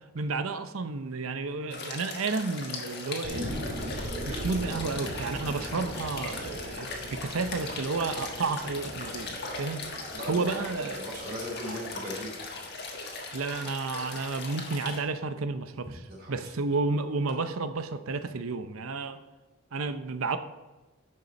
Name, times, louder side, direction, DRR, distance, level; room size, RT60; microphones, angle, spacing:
voice 1, 0.1-3.5 4.3-9.8 10.3-11.1 11.7-11.8 13.3-16.0 16.3-19.2 19.7-20.4, right 4 dB, 75° right, 10 dB, 0.7 m, -31 dB
sound 1, 1.7-15.0, left 3 dB, 50° left, 1.4 m, -39 dB
sound 2, 3.2-14.2 14.7-14.8, equal, 60° right, 2.2 m, -40 dB
voice 2, 10.1-12.3 16.1-16.5, equal, 45° right, -1 dB, 2.9 m, -38 dB
10.0 x 6.6 x 4.2 m, 1.1 s
head